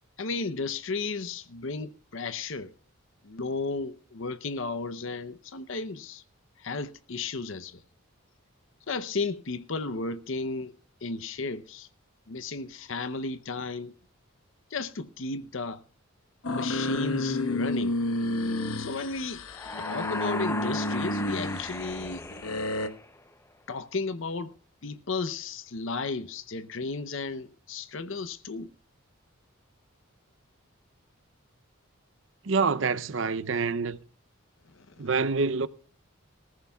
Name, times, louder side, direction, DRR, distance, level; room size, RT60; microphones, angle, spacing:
voice 1, 0.2-2.7 3.2-6.2 6.6-7.8 8.9-10.7 11.0-11.9 12.3-13.9 14.7-15.8 16.5-18.0 18.8-19.4 19.8-22.2 23.7-24.5 24.8-28.7 34.7-34.9, left 3 dB, 60° left, 0.7 m, -34 dB
sound 1, 16.4-22.9, left 1 dB, 90° left, 1.2 m, -31 dB
sound 2, 19.5-23.3, left 2 dB, 10° left, 0.6 m, -37 dB
voice 2, 32.4-34.0 35.0-35.7, right 4 dB, 60° right, 0.6 m, -26 dB
20.0 x 14.5 x 2.3 m
head